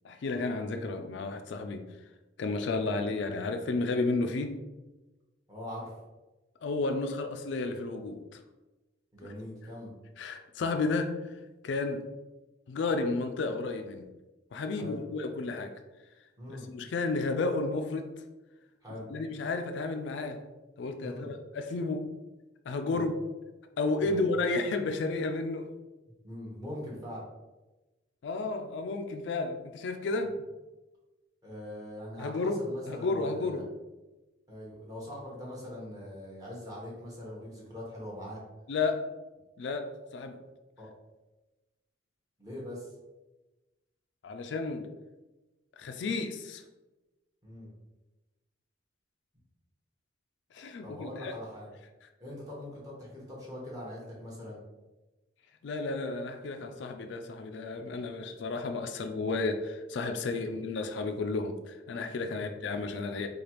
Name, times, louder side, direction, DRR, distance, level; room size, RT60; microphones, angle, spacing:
voice 1, 0.0-1.8 2.4-4.6 6.6-8.4 10.2-11.3 11.6-12.1 12.7-14.0 14.5-15.7 16.5-18.1 19.1-20.4 20.8-22.1 22.7-23.1 23.8-25.7 28.2-30.4 32.2-33.7 38.7-39.1 39.6-40.4 44.2-44.9 45.8-46.6 50.5-51.3 55.6-63.3, left 3 dB, 65° left, 6 dB, 0.3 m, -32 dB
voice 2, 5.5-5.9 9.1-9.9 14.7-15.0 16.4-16.7 18.8-19.1 21.0-21.3 22.9-23.1 24.0-24.3 26.2-27.2 31.4-33.6 34.5-38.4 40.8-40.9 42.4-42.9 47.4-47.7 50.8-51.7 52.2-54.6 60.4-60.6 62.3-62.6, left 1 dB, 20° right, -5 dB, 1.0 m, -42 dB
4.8 x 2.3 x 2.9 m, 1.1 s
head